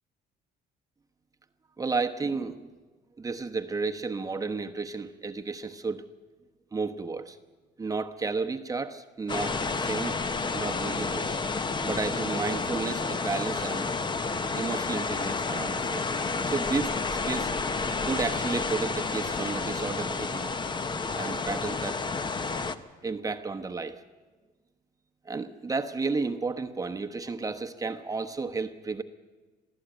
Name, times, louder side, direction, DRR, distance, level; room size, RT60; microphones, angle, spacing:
voice 1, 1.8-2.7 3.2-6.0 6.7-7.4 7.8-10.2 10.5-11.4 11.8-13.9 14.5-16.0 16.4-17.5 18.0-20.5 21.1-22.0 23.0-24.0 25.2-29.0, right 4 dB, 20° right, 5 dB, 1.0 m, -32 dB
sound 1, 9.3-22.8, left 4 dB, 25° left, 1.0 m, -30 dB
22.0 x 15.0 x 9.0 m, 1.3 s
cardioid pair, 110°, 17 cm